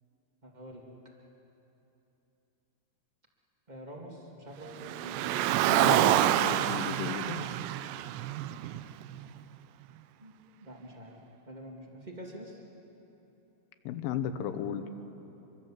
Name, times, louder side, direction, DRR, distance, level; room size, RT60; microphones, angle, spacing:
voice 1, 0.4-0.9 3.7-5.7 10.2-11.2 11.5-12.6, right 1 dB, 55° right, -1 dB, 0.4 m, -46 dB
Car, 4.8-9.2, right 13 dB, 80° right, 2.7 m, -27 dB
voice 2, 5.7-7.6 13.9-14.9, left 8 dB, 90° left, 9 dB, 3.6 m, -35 dB
26.0 x 24.0 x 7.4 m, 3.0 s
omnidirectional pair, 5.3 m